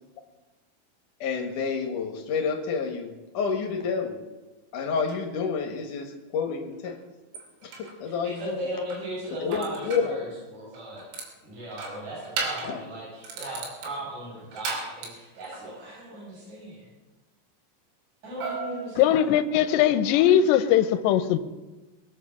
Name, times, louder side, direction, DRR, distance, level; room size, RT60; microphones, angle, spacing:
voice 1, 1.2-4.2 4.7-7.0 7.6-8.6 9.4-10.2 12.6-12.8, left 5 dB, 65° left, 4 dB, 2.2 m, -29 dB
sound 1, 5.0-5.2 6.8-6.9 7.4-8.0 8.9-10.1 10.7-11.3 11.7-12.8 13.2-15.7 18.4-19.7, right 4 dB, 85° right, 5.6 m, -36 dB
voice 2, 8.0-11.0 11.4-16.9 18.2-19.2, right 1 dB, 35° right, -8 dB, 8.3 m, -37 dB
voice 3, 19.0-21.4, left 10 dB, 80° left, 11 dB, 2.7 m, -20 dB
22.0 x 8.7 x 7.3 m, 1.1 s
omnidirectional pair, 5.6 m